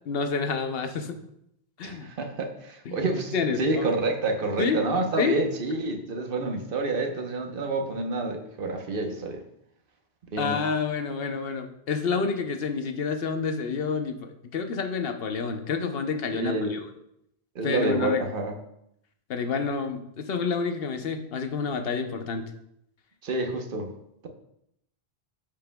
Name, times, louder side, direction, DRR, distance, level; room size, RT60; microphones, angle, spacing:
voice 1, 0.1-1.2 1.8-2.1 2.9-3.0 3.3-3.9 4.6-4.8 5.2-5.4 10.4-16.8 17.6-18.2 19.3-22.4, left 5 dB, 65° left, 6 dB, 1.0 m, -28 dB
voice 2, 1.8-9.4 10.3-10.6 16.3-16.7 17.5-18.5 23.2-23.9, right 2 dB, 60° right, 4 dB, 1.1 m, -28 dB
12.5 x 5.2 x 2.2 m, 0.77 s
omnidirectional pair, 1.1 m